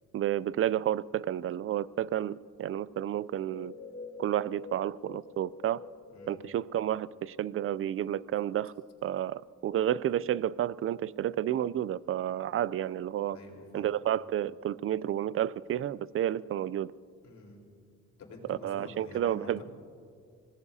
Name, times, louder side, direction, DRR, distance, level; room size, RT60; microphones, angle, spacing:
voice 1, 0.1-3.7 4.2-5.8 6.3-8.7 9.0-13.4 13.7-16.9 18.5-19.6, right 11 dB, 45° right, 0.4 m, -31 dB
sound 1, 3.3-7.9, left 4 dB, 20° left, 5.4 m, -48 dB
voice 2, 6.1-6.4 13.3-13.9 17.2-17.6 18.2-19.6, left 3 dB, 65° left, 4.3 m, -48 dB
26.0 x 19.0 x 2.8 m
cardioid pair, 90°, 30 cm